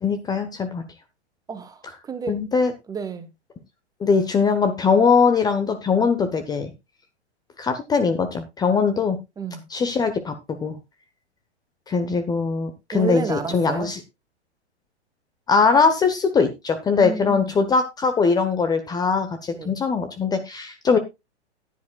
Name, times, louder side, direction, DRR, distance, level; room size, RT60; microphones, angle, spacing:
voice 1, 0.0-0.8 2.3-2.7 4.0-6.7 7.6-9.2 9.7-10.8 11.9-14.0 15.5-21.0, left 5 dB, 10° left, 1.0 m, -21 dB
voice 2, 1.5-2.4 2.9-3.3 9.4-9.6 12.9-13.9 17.0-17.5 19.5-19.7 20.9-21.0, right 5 dB, 10° right, 1.2 m, -31 dB
15.0 x 10.0 x 2.3 m
figure-of-eight pair, 110°, 34 cm